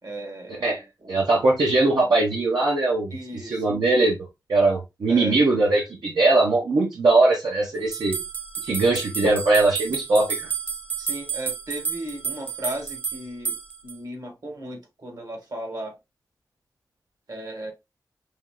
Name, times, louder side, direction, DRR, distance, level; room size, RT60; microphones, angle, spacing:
voice 1, 0.0-0.7 1.0-1.3 3.1-3.7 5.1-5.4 11.0-13.6 13.8-15.9 17.3-17.7, right 1 dB, 65° right, 1.7 m, -36 dB
voice 2, 1.1-3.1 3.5-4.2 4.5-8.2 8.6-10.5, right 2 dB, 85° right, 1.1 m, -20 dB
sound 1, 7.9-14.0, right 6 dB, 25° right, 0.7 m, -31 dB
5.6 x 3.3 x 2.2 m
wide cardioid pair, 110°, 7 cm